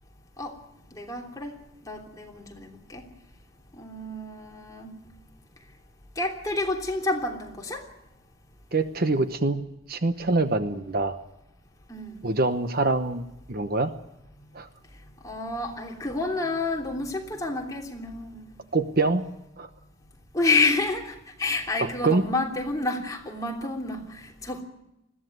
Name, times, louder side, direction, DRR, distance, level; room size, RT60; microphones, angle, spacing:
voice 1, 0.9-1.5 1.8-3.0 3.7-5.0 6.1-7.8 11.9-12.2 15.2-18.5 20.3-24.6, left 3 dB, 15° left, 0 dB, 3.2 m, -29 dB
voice 2, 8.7-11.2 12.2-13.9 14.5-14.7 18.7-19.2 19.6-19.7 21.8-22.2, right 3 dB, 45° right, 9 dB, 1.0 m, -25 dB
21.0 x 15.5 x 9.5 m, 0.87 s
head